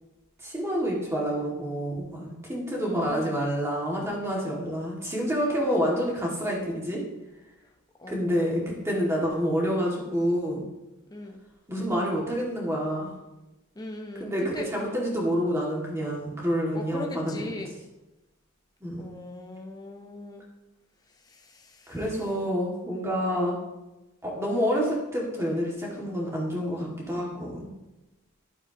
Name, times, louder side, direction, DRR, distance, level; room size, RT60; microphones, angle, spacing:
voice 1, 0.4-7.0 8.1-10.6 11.7-13.1 14.2-17.5 18.8-19.2 21.9-23.6 24.2-27.7, equal, 10° right, -3 dB, 2.2 m, -28 dB
voice 2, 2.8-3.4 8.0-8.5 11.1-11.4 13.7-14.7 16.7-17.8 19.0-20.5 21.2-21.9, left 1 dB, 15° left, 2 dB, 0.9 m, -39 dB
12.0 x 8.7 x 3.0 m, 1.0 s
head